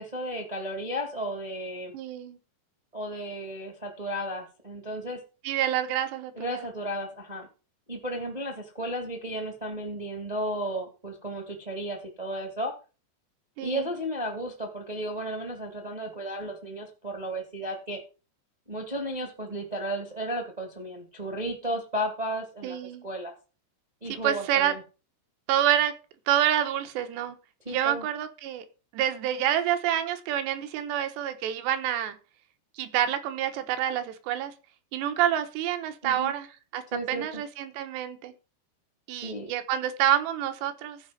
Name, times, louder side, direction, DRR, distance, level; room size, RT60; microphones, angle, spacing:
voice 1, 0.0-1.9 2.9-5.2 6.3-7.5 7.9-12.7 13.6-18.0 18.7-23.3 24.0-24.8 27.6-28.1 36.0-36.3 36.9-37.4 39.2-39.5, right 1 dB, 55° right, 2 dB, 0.4 m, -34 dB
voice 2, 1.9-2.4 5.4-6.7 13.6-13.9 22.6-23.1 24.1-24.7 25.5-25.9 26.3-27.4 27.7-28.7 28.9-32.2 32.8-34.5 34.9-36.5 36.7-38.3 39.1-41.0, right 11 dB, 85° right, 9 dB, 3.3 m, -27 dB
14.5 x 5.1 x 5.2 m, 0.34 s
omnidirectional pair, 4.8 m